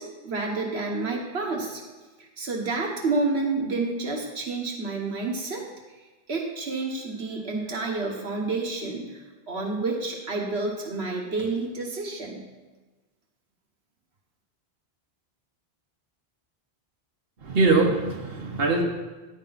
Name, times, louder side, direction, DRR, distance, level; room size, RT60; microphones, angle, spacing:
voice 1, 0.0-1.8 2.2-6.0 6.3-12.4, right 3 dB, 80° right, 1 dB, 1.7 m, -29 dB
voice 2, 17.4-18.8, right 3 dB, 65° right, 0 dB, 1.6 m, -22 dB
14.0 x 10.0 x 4.2 m, 1.2 s
omnidirectional pair, 1.1 m